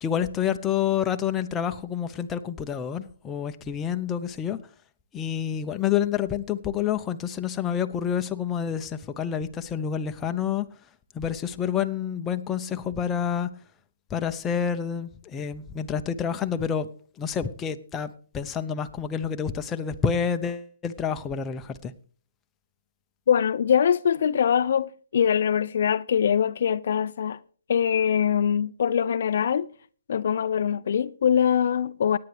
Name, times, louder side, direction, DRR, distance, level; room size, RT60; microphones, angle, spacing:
voice 1, 0.0-4.6 5.1-10.7 11.1-13.5 14.1-16.9 17.2-18.1 18.3-21.9, left 8 dB, 15° left, 0.7 m, -28 dB
voice 2, 23.3-27.4 27.7-29.7 30.1-32.2, left 8 dB, 55° left, 0.4 m, -23 dB
18.0 x 9.5 x 3.4 m
hypercardioid pair, 150°, 0 cm